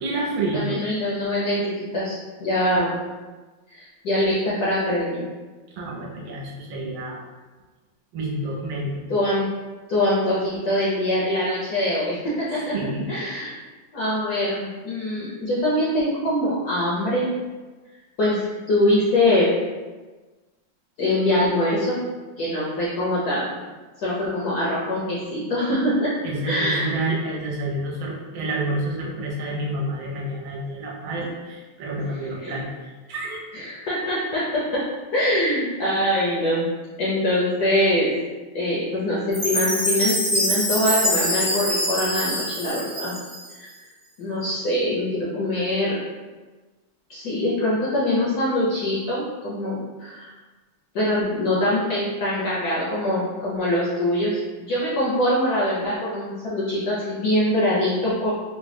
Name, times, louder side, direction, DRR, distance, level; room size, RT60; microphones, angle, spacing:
voice 1, 0.0-0.8 5.7-7.2 8.1-9.0 12.7-13.1 26.2-32.7 33.1-33.4, right 1 dB, 75° right, -2 dB, 1.4 m, -28 dB
voice 2, 0.5-3.0 3.7-5.3 9.1-9.5 9.9-12.4 13.1-13.5 13.9-17.3 18.2-19.5 21.0-22.0 22.4-23.5 24.0-26.1 26.5-27.0 32.2-32.5 33.5-34.8 35.1-36.7 37.0-38.1 38.5-43.1 43.5-43.7 44.2-46.0 47.1-50.3 50.9-58.3, left 1 dB, 65° left, -7 dB, 0.9 m, -23 dB
Chime, 39.3-43.5, equal, 10° right, 0.5 m, -24 dB
3.7 x 2.1 x 3.3 m, 1.3 s
omnidirectional pair, 2.3 m